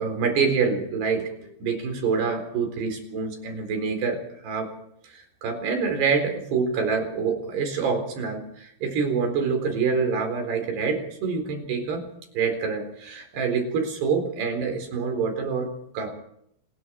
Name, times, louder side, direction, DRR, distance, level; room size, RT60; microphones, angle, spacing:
voice 1, 0.0-4.7 5.1-12.1 12.3-16.1, right 5 dB, 85° right, 5 dB, 6.3 m, -26 dB
26.5 x 21.0 x 4.7 m, 0.72 s
omnidirectional pair, 4.6 m